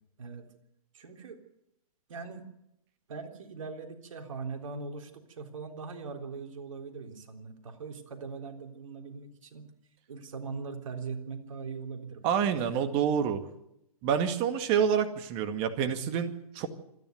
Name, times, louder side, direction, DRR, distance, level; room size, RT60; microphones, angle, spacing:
voice 1, 0.9-1.4 2.1-2.4 3.1-9.7 10.1-12.4, right 4 dB, 60° right, 4 dB, 3.6 m, -41 dB
voice 2, 12.2-13.4 14.0-16.7, right 7 dB, 30° right, 8 dB, 2.0 m, -27 dB
26.5 x 11.0 x 9.3 m, 0.81 s
figure-of-eight pair, 125°, 19 cm